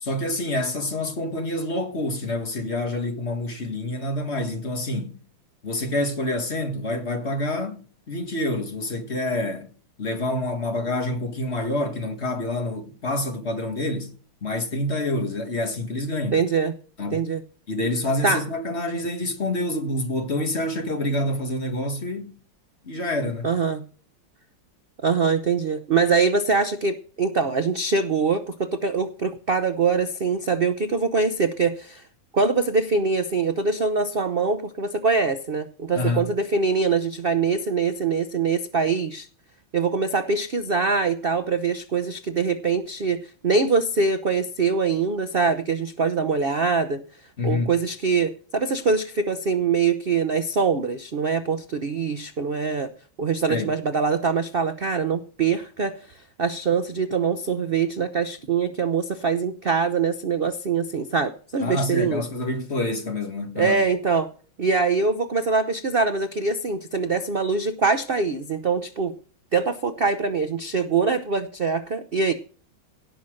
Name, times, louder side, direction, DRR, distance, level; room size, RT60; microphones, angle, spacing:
voice 1, 0.0-5.2 5.6-9.7 10.0-14.1 14.4-16.4 17.0-17.2 17.7-22.4 22.8-23.5 35.9-36.3 47.4-47.7 53.5-53.7 61.6-63.8, left 1 dB, 35° left, 1.7 m, -27 dB
voice 2, 16.3-16.7 17.1-17.4 18.2-18.4 23.4-23.8 25.0-32.0 32.3-39.3 39.7-47.0 47.4-52.9 53.2-56.0 56.4-62.2 63.6-64.3 64.6-69.1 69.5-72.3, right 4 dB, 70° right, 0.5 m, -23 dB
17.0 x 5.8 x 6.4 m
omnidirectional pair, 2.2 m